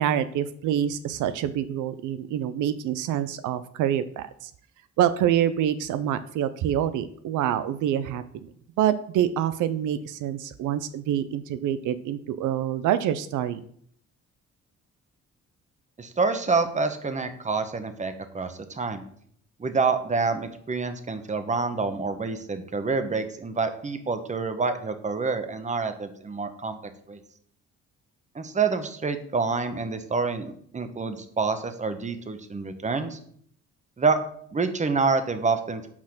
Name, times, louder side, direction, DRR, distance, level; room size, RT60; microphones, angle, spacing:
voice 1, 0.0-4.5 5.0-8.5 8.8-13.6, right 10 dB, 85° right, 12 dB, 0.5 m, -26 dB
voice 2, 16.0-19.0 19.6-26.8 27.1-27.2 28.3-33.2 34.0-34.2 34.5-35.9, right 4 dB, 25° right, 9 dB, 1.0 m, -27 dB
5.9 x 4.3 x 6.4 m, 0.62 s
cardioid pair, 90°, 30 cm